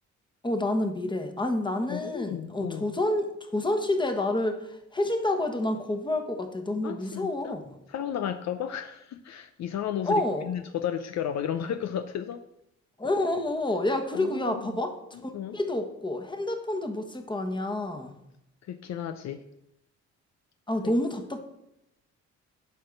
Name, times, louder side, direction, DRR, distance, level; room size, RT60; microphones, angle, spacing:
voice 1, 0.4-7.7 10.0-10.5 13.0-14.9 15.2-18.1 20.7-21.4, left 1 dB, 15° left, 6 dB, 1.3 m, -28 dB
voice 2, 1.9-3.0 6.8-7.6 7.9-12.5 14.1-14.8 15.3-15.6 18.7-19.4 20.8-20.9, left 9 dB, 60° left, 9 dB, 0.6 m, -33 dB
9.0 x 4.4 x 6.6 m, 0.83 s
cardioid pair, 90°, 30 cm